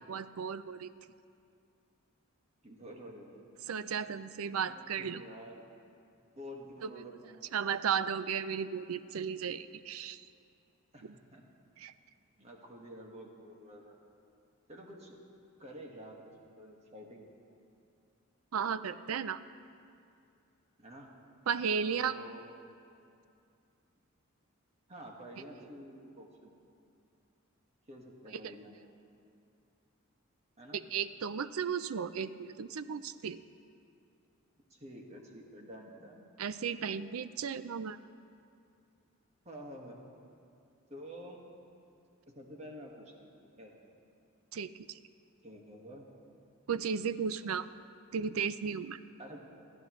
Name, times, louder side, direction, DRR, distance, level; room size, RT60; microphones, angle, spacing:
voice 1, 0.1-0.9 3.7-5.2 6.8-6.9 7.5-10.3 11.8-11.9 18.5-19.4 21.5-22.2 28.3-28.5 30.7-33.4 36.4-38.0 44.5-45.0 46.7-47.7 48.1-49.0, right 6 dB, 85° right, 14 dB, 0.5 m, -35 dB
voice 2, 2.6-3.4 4.7-5.6 6.3-7.5 10.9-11.4 12.4-14.0 14.7-15.2 15.6-17.3 20.8-21.1 21.9-22.4 24.9-26.5 27.9-28.7 30.6-30.8 34.7-36.3 39.4-40.0 40.9-41.4 42.3-43.7 45.4-46.0 49.2-49.4, equal, 30° right, 0 dB, 1.7 m, -49 dB
29.5 x 11.0 x 3.1 m, 2.5 s
head